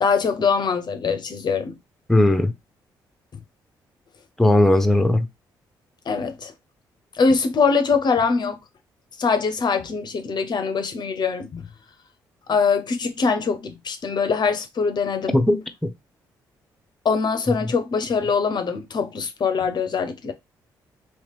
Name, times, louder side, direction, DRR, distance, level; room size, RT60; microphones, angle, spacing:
voice 1, 0.0-1.7 6.1-6.5 7.2-8.5 9.2-11.7 12.5-15.4 17.0-20.3, left 5 dB, 45° left, 0.5 m, -23 dB
voice 2, 2.1-2.5 4.4-5.3 15.3-15.9, left 1 dB, 5° left, 0.6 m, -18 dB
3.0 x 2.9 x 3.2 m
hypercardioid pair, 45°, 10 cm